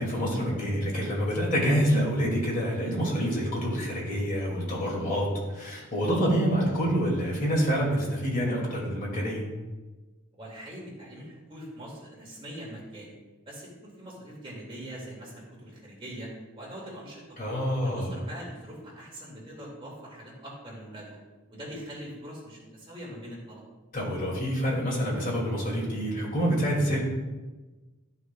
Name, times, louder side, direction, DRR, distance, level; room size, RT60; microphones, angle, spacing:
voice 1, 0.0-9.4 17.4-18.1 23.9-27.0, equal, 40° left, -3 dB, 2.6 m, -27 dB
voice 2, 10.3-13.1 13.5-16.3 16.5-17.2 17.8-21.2 21.5-23.6, equal, 25° right, -4 dB, 2.3 m, -42 dB
13.0 x 6.4 x 2.4 m, 1.2 s
head